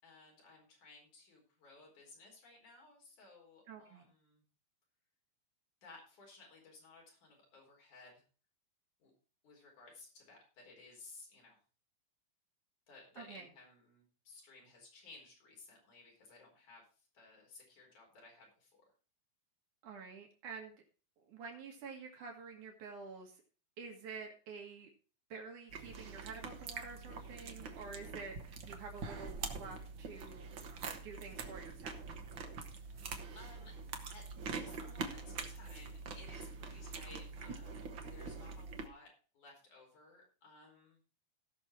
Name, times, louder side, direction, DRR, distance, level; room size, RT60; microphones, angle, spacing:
voice 1, 0.0-4.4 5.8-8.2 9.0-9.1 9.4-11.6 12.9-18.8 32.8-33.8 34.1-37.9 38.1-41.0, left 3 dB, 75° left, 0 dB, 5.9 m, -58 dB
voice 2, 3.7-4.0 13.2-13.5 19.8-20.8 21.2-23.4 23.8-24.9 25.3-30.8 31.0-32.0, right 5 dB, 80° right, 2 dB, 3.2 m, -49 dB
sound 1, 25.7-38.9, right 4 dB, 50° right, 1.6 m, -45 dB
17.0 x 6.2 x 4.5 m, 0.38 s
omnidirectional pair, 3.5 m